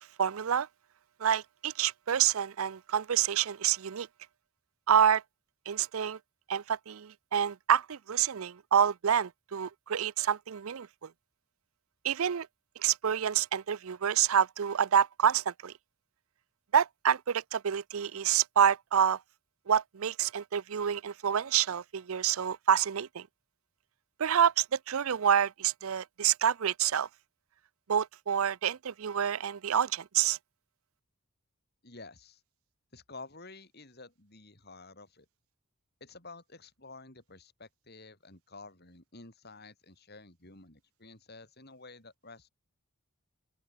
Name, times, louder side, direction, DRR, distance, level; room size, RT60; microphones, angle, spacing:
voice 1, 0.2-0.7 1.2-4.1 4.9-5.2 5.7-6.2 6.5-11.1 12.0-12.5 12.8-15.7 16.7-19.2 19.7-23.3 24.2-27.1 27.9-30.4, right 8 dB, 75° right, 0.5 m, -28 dB
voice 2, 31.8-32.4 32.9-35.3 36.0-42.5, left 3 dB, 45° left, 5.5 m, -51 dB
open air
head